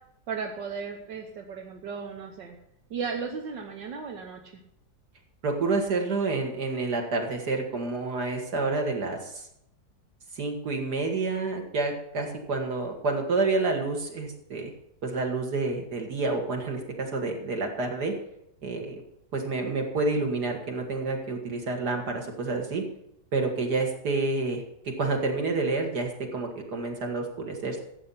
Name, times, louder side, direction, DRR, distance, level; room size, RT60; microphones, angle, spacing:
voice 1, 0.3-2.6 2.9-4.4, right 5 dB, 85° right, 2 dB, 1.8 m, -35 dB
voice 2, 5.4-9.5 10.4-14.7 15.0-18.1 18.6-19.0 19.3-22.8 23.3-24.6 25.0-27.8, right 3 dB, 65° right, 2 dB, 2.7 m, -29 dB
14.5 x 8.2 x 5.7 m, 0.76 s
omnidirectional pair, 1.9 m